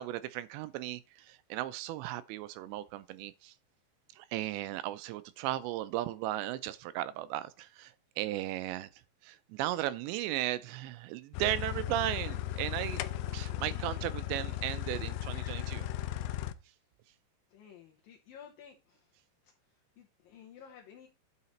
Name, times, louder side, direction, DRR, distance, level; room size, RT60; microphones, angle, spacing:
voice 1, 0.0-3.5 4.2-8.9 9.2-13.0 13.3-15.9, right 14 dB, 85° right, 2.7 m, -36 dB
sound 1, 11.3-16.5, left 13 dB, 85° left, 2.3 m, -36 dB
voice 2, 17.5-19.2 19.4-19.5 20.0-21.1, left 8 dB, 70° left, 2.4 m, -53 dB
9.7 x 5.0 x 4.2 m
omnidirectional pair, 5.3 m